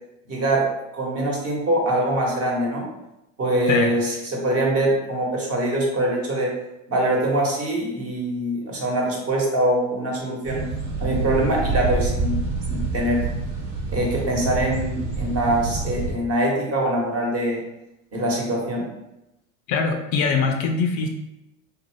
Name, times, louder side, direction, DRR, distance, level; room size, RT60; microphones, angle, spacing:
voice 1, 0.3-0.7 0.9-2.8 3.4-6.5 6.9-10.6 11.0-12.4 12.7-13.2 13.9-17.6 18.1-18.9, right 1 dB, 35° right, -2 dB, 1.1 m, -23 dB
sound 1, 10.4-16.1, right 3 dB, 65° right, 0.9 m, -27 dB
voice 2, 19.7-21.1, left 5 dB, 50° left, 4 dB, 0.5 m, -22 dB
2.6 x 2.2 x 3.2 m, 0.90 s
hypercardioid pair, 80°, 39 cm